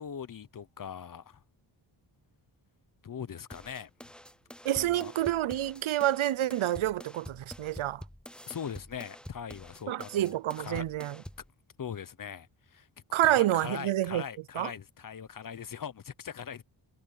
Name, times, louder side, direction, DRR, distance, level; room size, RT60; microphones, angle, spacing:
voice 1, 0.0-1.4 3.0-3.9 4.8-5.1 8.5-10.8 11.8-12.9 13.2-16.6, left 7 dB, 45° left, 0.8 m, -41 dB
sound 1, 3.5-11.5, equal, ahead, 0.6 m, -48 dB
voice 2, 4.6-8.0 9.9-11.2 13.1-14.2 14.5-14.7, right 13 dB, 85° right, 0.7 m, -28 dB
wide cardioid pair, 175°, 47 cm